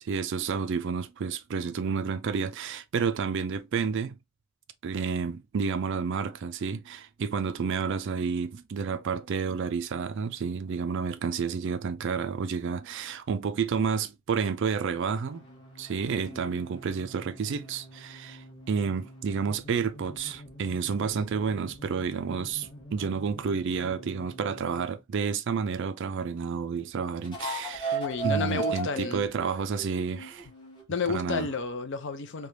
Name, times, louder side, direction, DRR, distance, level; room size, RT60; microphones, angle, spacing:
voice 1, 0.0-4.2 4.8-15.5 15.8-30.5 31.1-31.5, right 5 dB, 55° right, 0.4 m, -30 dB
sound 1, 14.9-25.0 27.2-30.9, right 3 dB, 20° left, 0.8 m, -39 dB
voice 2, 27.9-29.3 30.9-32.5, left 4 dB, 55° left, 0.5 m, -31 dB
3.3 x 2.2 x 2.7 m
head